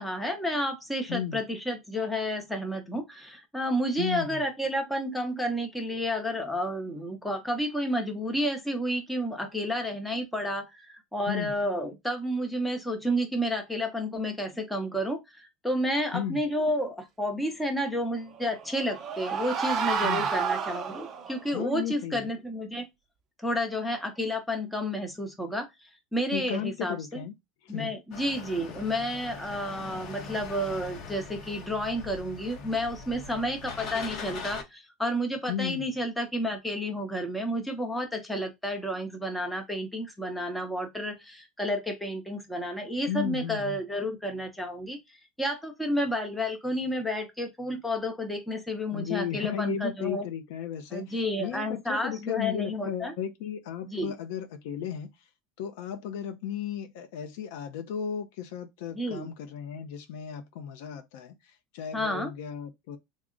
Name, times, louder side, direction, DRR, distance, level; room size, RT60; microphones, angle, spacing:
voice 1, 0.0-22.8 23.4-27.2 27.7-45.0 45.4-50.3 50.9-53.1 53.9-54.1 58.9-59.3 61.9-62.3, equal, 5° left, 0.7 m, -31 dB
voice 2, 1.1-1.4 4.0-4.4 11.3-11.5 16.1-16.4 20.0-20.3 21.5-22.3 26.3-27.3 27.6-28.0 35.5-35.9 43.1-43.8 48.9-55.1 55.6-63.0, left 9 dB, 75° left, 0.5 m, -35 dB
sound 1, 18.4-21.4, right 6 dB, 30° right, 0.6 m, -30 dB
sound 2, 28.1-34.6, left 4 dB, 45° left, 0.8 m, -41 dB
3.5 x 2.0 x 3.7 m
cardioid pair, 155°, 0 cm